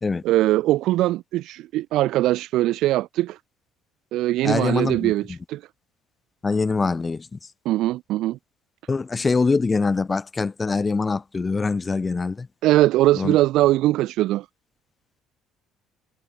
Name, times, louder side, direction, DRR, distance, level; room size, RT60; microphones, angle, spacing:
voice 1, 0.2-3.4 4.1-5.6 7.6-8.4 12.6-14.4, right 15 dB, 60° right, 6.3 m, -21 dB
voice 2, 4.4-5.4 6.4-7.4 8.9-12.5 13.1-13.4, left 4 dB, 15° left, 3.2 m, -24 dB
cardioid pair, 170°, 0 cm